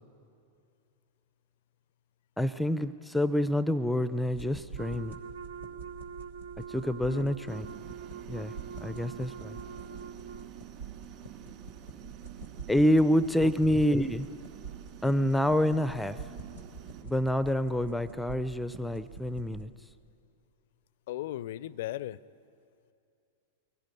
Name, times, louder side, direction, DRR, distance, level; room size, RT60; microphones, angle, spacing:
voice 1, 2.4-5.2 6.7-7.7 8.3-8.5 8.8-9.6 12.7-14.3 15.0-16.2 17.0-19.7, equal, 5° left, 14 dB, 0.5 m, -27 dB
sound 1, 4.3-19.6, right 5 dB, 90° right, 2.7 m, -46 dB
Wind instrument woodwind instrument, 4.7-10.5, right 7 dB, 65° right, 0.6 m, -44 dB
sound 2, 7.5-17.0, right 10 dB, 45° right, 3.1 m, -49 dB
voice 2, 21.1-22.2, left 14 dB, 55° left, 21 dB, 0.5 m, -37 dB
23.5 x 17.0 x 9.2 m, 2.6 s
figure-of-eight pair, 95°, 0 cm